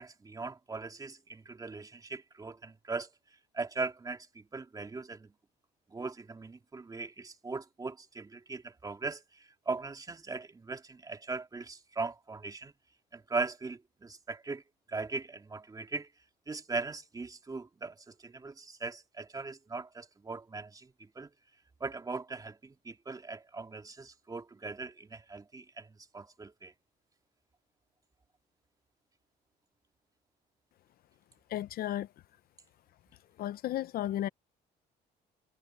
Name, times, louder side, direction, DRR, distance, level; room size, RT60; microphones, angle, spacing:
voice 1, 0.0-3.1 3.5-5.3 5.9-9.2 9.7-12.7 13.1-14.6 14.9-16.1 16.5-21.3 21.8-25.9 26.1-26.7, right 3 dB, 20° right, 2.8 m, -39 dB
voice 2, 31.5-32.1 33.4-34.3, left 13 dB, 60° left, 0.7 m, -33 dB
cardioid pair, 110°, 17 cm